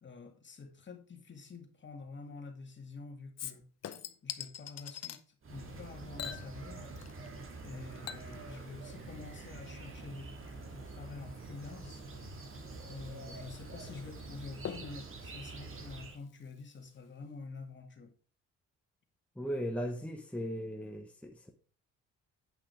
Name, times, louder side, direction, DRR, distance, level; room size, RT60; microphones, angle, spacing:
voice 1, 0.0-3.6 4.2-6.9 7.6-10.3 10.6-12.0 12.8-18.1, left 4 dB, 40° left, 2.2 m, -48 dB
Chink clink / Liquid, 3.4-5.2 6.2-7.3 7.6-16.6 17.0-17.1, left 9 dB, 55° left, 0.9 m, -47 dB
sound 1, 5.4-16.2, right 3 dB, 45° right, 2.0 m, -46 dB
voice 2, 19.4-21.5, equal, 5° left, 1.2 m, -37 dB
8.9 x 5.7 x 4.8 m
cardioid pair, 90°, 30 cm